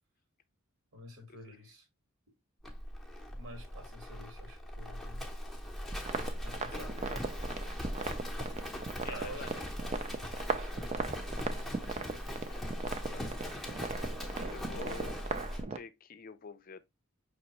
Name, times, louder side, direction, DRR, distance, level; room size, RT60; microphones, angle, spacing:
voice 1, 0.9-1.9 3.3-5.2 6.4-7.0 9.0-9.6 10.2-11.7, right 1 dB, 75° right, 1.9 m, -50 dB
Livestock farm animals working animals, 2.6-15.7, equal, ahead, 0.8 m, -40 dB
sound 1, 5.9-15.8, right 4 dB, 30° right, 0.5 m, -39 dB
voice 2, 9.0-9.5 12.5-12.6 13.1-13.3 14.5-16.8, left 5 dB, 40° left, 0.5 m, -47 dB
5.4 x 3.0 x 2.9 m
head